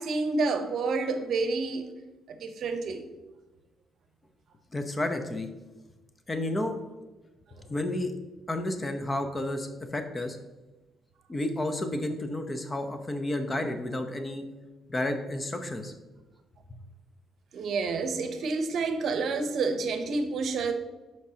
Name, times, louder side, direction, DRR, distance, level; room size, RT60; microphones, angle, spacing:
voice 1, 0.0-1.9 2.3-3.1 17.5-20.7, right 3 dB, 65° right, 8 dB, 0.8 m, -29 dB
voice 2, 4.7-5.5 6.3-6.7 7.7-8.1 8.5-10.4 11.3-14.4 14.9-15.9, left 1 dB, 25° left, 7 dB, 0.8 m, -31 dB
11.0 x 4.6 x 2.9 m, 1.1 s
cardioid pair, 90°, 0 cm